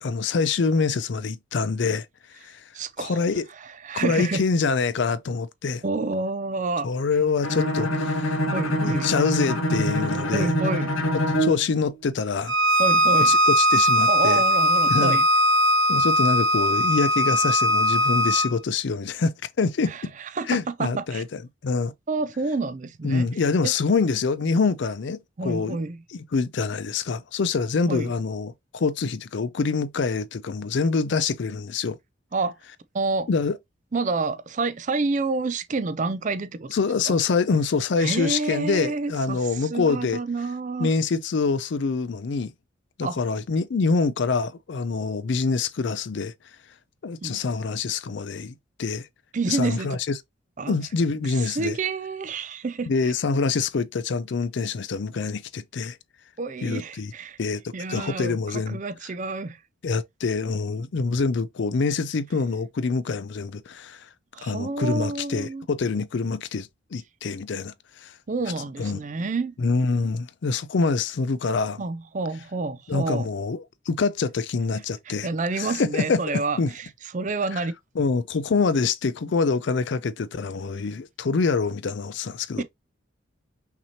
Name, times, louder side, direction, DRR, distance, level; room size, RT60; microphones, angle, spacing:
voice 1, 0.0-2.1 2.4-2.6 3.0-3.4 3.9-5.8 6.8-8.4 8.8-10.5 11.4-12.6 13.2-14.4 14.9-15.2 15.9-20.1 20.5-21.9 23.0-25.8 26.1-32.0 33.3-33.6 36.7-40.2 40.8-42.5 43.0-46.3 47.0-49.1 49.5-50.2 50.7-51.8 52.9-56.0 56.6-57.1 57.4-57.6 57.9-58.8 59.8-64.1 64.4-68.1 68.8-69.0 69.6-71.8 72.9-75.3 75.6-76.7 77.5-77.6 78.0-82.6, left 4 dB, 60° left, 0.4 m, -25 dB
voice 2, 2.7-3.2 3.6-4.4 5.8-6.9 8.5-9.1 10.3-10.9 12.8-13.3 14.1-15.2 19.9-21.2 22.1-23.3 23.6-23.7 25.4-26.0 27.9-28.1 32.3-32.6 32.9-33.3 33.9-36.7 37.1-37.2 38.0-40.9 43.0-43.2 47.2-47.4 49.3-50.0 50.6-50.8 51.3-53.1 56.4-57.4 57.7-59.6 64.3-65.6 68.3-69.5 71.8-73.3 75.1-76.9 77.1-77.7 82.6-82.7, right 3 dB, 35° right, 0.4 m, -28 dB
Bowed string instrument, 7.4-11.7, equal, 75° left, 1.1 m, -25 dB
Bowed string instrument 2, 12.5-18.5, equal, 65° right, 1.0 m, -20 dB
5.8 x 2.9 x 2.8 m
head